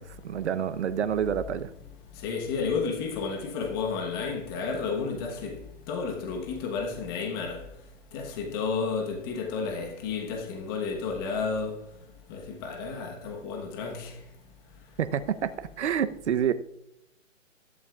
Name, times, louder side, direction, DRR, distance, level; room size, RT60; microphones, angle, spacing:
voice 1, 0.0-1.7 15.0-16.5, right 8 dB, 60° right, 0.9 m, -28 dB
voice 2, 2.2-5.6 5.9-7.6 8.1-11.8 12.3-14.1, left 5 dB, 20° left, 1.2 m, -31 dB
21.0 x 11.0 x 2.4 m
hypercardioid pair, 160°, 38 cm